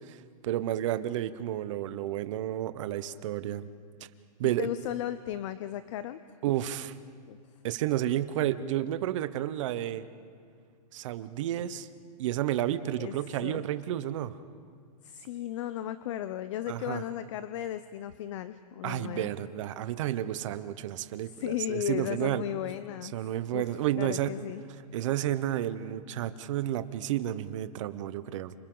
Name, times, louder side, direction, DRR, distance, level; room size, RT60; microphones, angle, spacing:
voice 1, 0.0-3.6 4.4-4.7 6.4-7.0 7.6-10.1 10.9-11.9 12.2-14.4 16.7-17.0 18.8-22.4 23.1-24.3 24.9-28.5, right 12 dB, 45° right, 12 dB, 1.0 m, -31 dB
voice 2, 4.6-6.2 7.3-7.4 13.0-13.1 13.4-13.6 15.0-19.3 21.4-23.2 23.5-24.6, left 12 dB, 45° left, 13 dB, 0.6 m, -35 dB
30.0 x 27.5 x 3.9 m, 2.1 s
hypercardioid pair, 155°, 21 cm